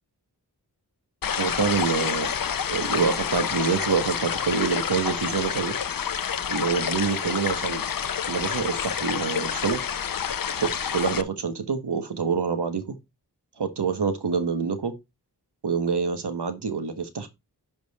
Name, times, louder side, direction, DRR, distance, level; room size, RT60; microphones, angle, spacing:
sound 1, 1.2-11.2, left 8 dB, 55° left, 0.7 m, -28 dB
voice 1, 1.4-2.4 2.7-5.8 6.5-7.8 8.3-9.8 10.5-13.0 13.6-14.9 15.6-17.3, right 5 dB, 75° right, 1.5 m, -26 dB
10.5 x 4.4 x 4.1 m
wide cardioid pair, 55°, 40 cm